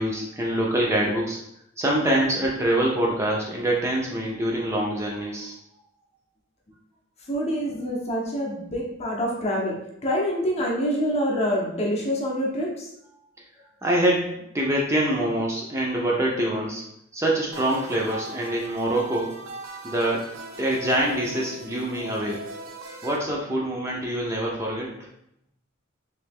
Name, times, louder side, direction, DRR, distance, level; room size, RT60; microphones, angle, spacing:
voice 1, 0.0-1.4 1.8-5.5 13.8-16.8 17.1-19.3 19.8-20.2 20.6-22.4 23.0-24.9, right 1 dB, 15° right, -3 dB, 0.5 m, -25 dB
voice 2, 7.3-9.8 10.0-12.9, equal, 30° left, -1 dB, 0.7 m, -26 dB
sound 1, 17.5-23.2, right 2 dB, 75° right, 0.5 m, -39 dB
3.2 x 2.9 x 3.5 m, 0.77 s
head